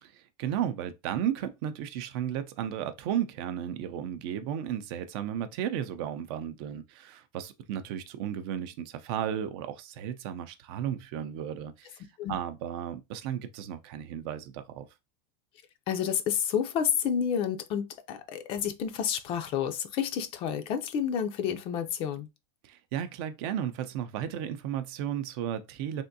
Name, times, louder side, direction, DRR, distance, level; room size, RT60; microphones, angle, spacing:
voice 1, 0.0-14.9 22.6-26.0, right 10 dB, 55° right, 0.5 m, -34 dB
voice 2, 15.9-22.3, left 8 dB, 40° left, 0.4 m, -30 dB
3.5 x 2.5 x 2.6 m
supercardioid pair, 155°, 15 cm